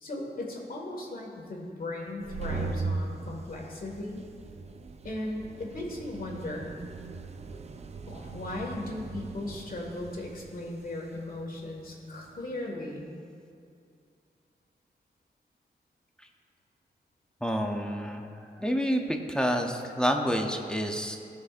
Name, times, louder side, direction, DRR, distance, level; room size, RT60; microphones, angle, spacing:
voice 1, 0.0-4.3 5.0-6.8 8.1-13.1, left 1 dB, 55° left, -1 dB, 1.7 m, -37 dB
sound 1, 2.1-12.5, right 3 dB, 40° right, 0.4 m, -39 dB
voice 2, 17.4-21.2, equal, 5° left, 3 dB, 0.6 m, -29 dB
17.5 x 6.5 x 2.5 m, 2.4 s
wide cardioid pair, 145°, 17 cm